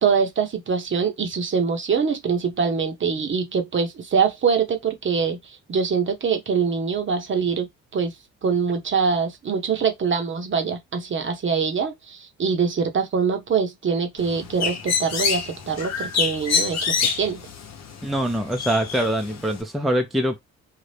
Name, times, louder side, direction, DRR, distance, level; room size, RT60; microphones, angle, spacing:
voice 1, 0.0-7.7 7.9-8.2 8.4-17.4, right 5 dB, 40° right, 0.9 m, -24 dB
Bird, 14.2-19.6, left 6 dB, 60° left, 0.9 m, -27 dB
voice 2, 18.0-20.4, right 1 dB, ahead, 0.6 m, -24 dB
2.8 x 2.4 x 3.3 m
cardioid pair, 90°, 30 cm